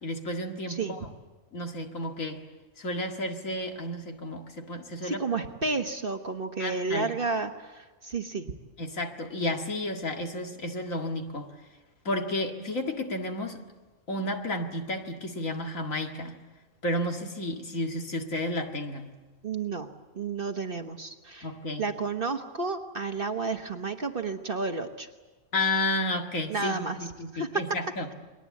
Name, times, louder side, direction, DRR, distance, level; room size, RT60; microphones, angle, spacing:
voice 1, 0.0-1.0 1.5-2.4 2.8-5.2 6.6-7.1 8.8-11.5 12.0-13.6 14.1-16.4 16.8-19.1 21.4-21.8 25.5-28.1, left 1 dB, 75° left, 3 dB, 2.4 m, -32 dB
voice 2, 5.0-8.5 19.4-19.9 20.1-21.5 21.8-25.1 26.5-27.0 27.3-27.6, right 4 dB, 45° right, 6 dB, 1.4 m, -31 dB
29.5 x 21.5 x 8.4 m, 1.2 s
omnidirectional pair, 1.4 m